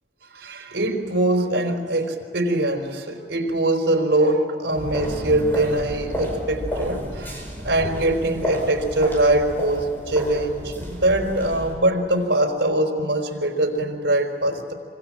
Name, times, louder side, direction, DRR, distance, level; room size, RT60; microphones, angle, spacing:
voice 1, 0.3-14.7, right 1 dB, 85° right, 5 dB, 4.2 m, -22 dB
sound 1, 4.7-11.7, equal, 10° left, 5.4 m, -31 dB
26.0 x 25.5 x 7.5 m, 2.4 s
head